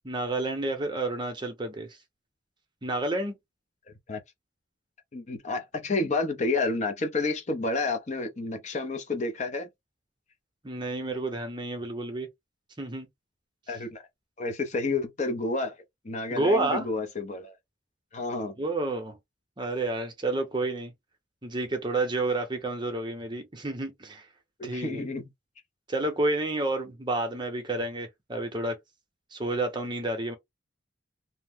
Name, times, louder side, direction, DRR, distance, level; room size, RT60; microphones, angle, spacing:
voice 1, 0.0-2.0 2.8-3.4 10.6-12.3 12.8-13.1 16.3-16.9 18.6-19.2 19.6-20.9 21.4-24.3 24.6-25.0 25.9-28.8 29.3-30.4, right 2 dB, 25° right, 0.7 m, -30 dB
voice 2, 5.1-9.7 13.7-14.0 14.4-15.8 16.0-17.5 18.1-18.5 24.6-25.2, left 3 dB, 35° left, 0.5 m, -30 dB
2.7 x 2.0 x 3.4 m
head